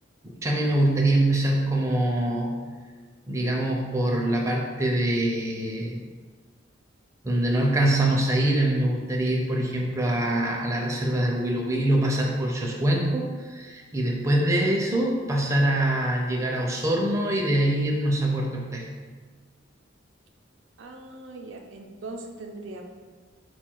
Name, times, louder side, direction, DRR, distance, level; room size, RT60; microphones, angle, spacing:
voice 1, 0.2-2.6 3.3-6.0 7.2-18.9, right 1 dB, 15° right, -1 dB, 0.4 m, -24 dB
voice 2, 20.8-22.8, right 2 dB, 70° right, 3 dB, 0.5 m, -40 dB
4.4 x 2.3 x 4.4 m, 1.5 s
head